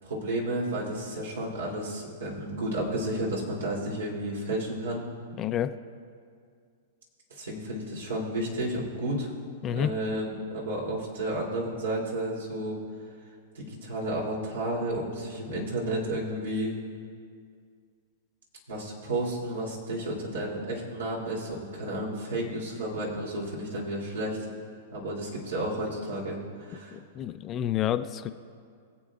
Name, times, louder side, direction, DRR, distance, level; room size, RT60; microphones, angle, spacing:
voice 1, 0.0-5.0 7.3-9.3 9.7-12.8 13.5-16.7 18.7-24.4 24.9-27.0, right 1 dB, 85° right, -3 dB, 3.0 m, -32 dB
voice 2, 5.4-5.7 9.6-9.9 26.9-28.3, left 10 dB, 30° left, 10 dB, 0.5 m, -29 dB
23.0 x 7.8 x 2.5 m, 2.2 s
hypercardioid pair, 130°, 0 cm